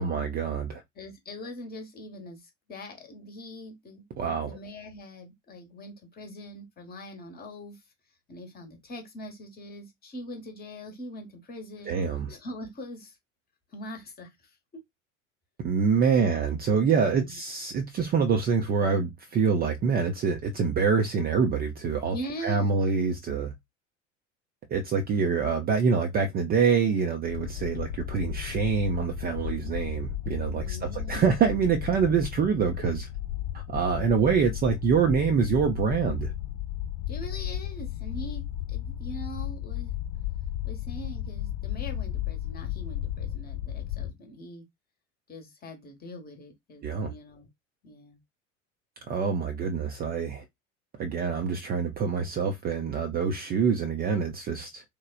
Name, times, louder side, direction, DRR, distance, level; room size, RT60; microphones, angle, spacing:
voice 1, 0.0-0.8 4.2-4.6 11.9-12.3 15.6-22.2 22.4-23.5 24.7-33.1 33.5-36.3 46.8-47.1 49.1-50.4 51.0-54.8, right 5 dB, 25° right, 0.5 m, -26 dB
voice 2, 1.0-7.8 8.3-12.0 12.3-13.2 13.7-14.8 16.1-16.4 17.0-17.4 22.1-22.7 30.6-31.3 37.1-39.9 40.6-44.6 45.3-47.5 47.8-48.2, equal, 25° left, 1.0 m, -42 dB
sound 1, 27.3-44.1, left 12 dB, 50° left, 0.6 m, -34 dB
3.1 x 2.1 x 2.4 m
figure-of-eight pair, 70°, 39 cm